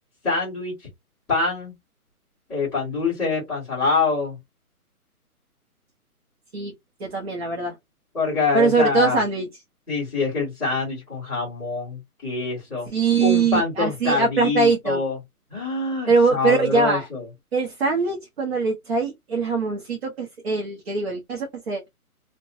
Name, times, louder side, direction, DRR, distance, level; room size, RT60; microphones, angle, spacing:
voice 1, 0.2-0.9 1.3-1.7 2.5-4.4 8.1-9.2 9.9-12.9 13.2-15.2 15.5-17.3, left 4 dB, 5° left, 0.8 m, -25 dB
voice 2, 7.0-7.7 8.5-9.5 12.9-15.0 16.1-17.1 17.5-21.9, right 4 dB, 45° right, 0.7 m, -22 dB
2.5 x 2.2 x 2.4 m
hypercardioid pair, 155°, 45 cm